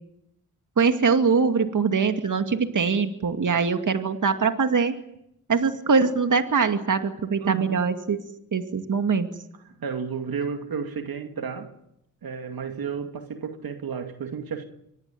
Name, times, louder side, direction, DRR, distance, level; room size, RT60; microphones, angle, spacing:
voice 1, 0.8-4.9 5.5-8.2 8.5-9.3, right 5 dB, 55° right, 2.4 m, -22 dB
voice 2, 7.4-7.8 9.8-11.7 12.2-14.7, right 6 dB, 70° right, 2.5 m, -32 dB
25.0 x 19.0 x 9.4 m
cardioid pair, 55°, 37 cm